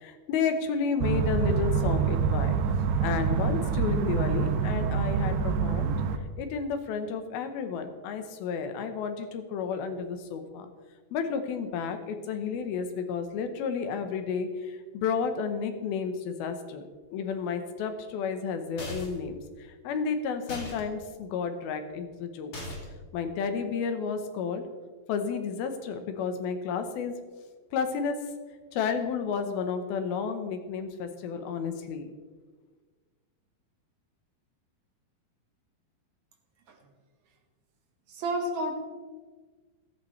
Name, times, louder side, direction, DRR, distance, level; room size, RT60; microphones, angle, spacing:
voice 1, 0.0-2.6 3.0-5.9 6.4-10.7 11.1-16.8 17.1-19.4 19.8-22.5 23.1-24.6 25.1-27.1 27.7-28.2 28.7-32.1, left 6 dB, 80° left, 7 dB, 2.9 m, -31 dB
sound 1, 1.0-6.2, right 6 dB, 75° right, 2.1 m, -26 dB
sound 2, 18.8-19.3 20.5-20.8 22.5-23.0, left 1 dB, 40° left, 3.1 m, -38 dB
voice 2, 38.1-38.8, right 1 dB, 60° right, 3 dB, 2.4 m, -30 dB
15.5 x 14.0 x 3.3 m, 1.4 s
omnidirectional pair, 4.3 m